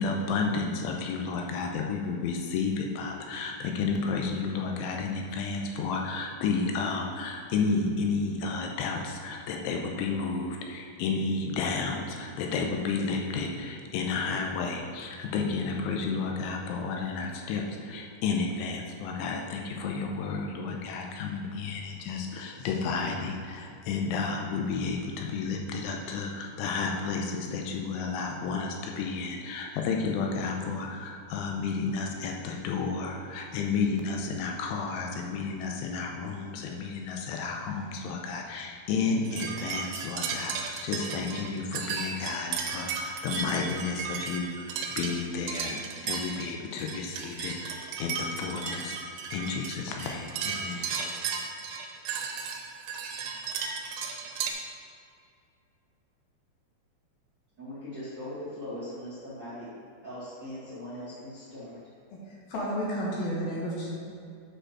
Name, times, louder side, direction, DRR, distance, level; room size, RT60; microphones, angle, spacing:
voice 1, 0.0-49.0 49.3-51.1, left 4 dB, 85° left, 1 dB, 3.2 m, -32 dB
sound 1, 39.3-54.5, right 6 dB, 85° right, 3.4 m, -35 dB
voice 2, 57.6-59.7 60.0-61.8, left 1 dB, 45° right, -12 dB, 1.4 m, -40 dB
voice 3, 62.1-63.9, equal, 60° left, -5 dB, 2.8 m, -32 dB
8.8 x 5.2 x 6.1 m, 2.4 s
omnidirectional pair, 5.6 m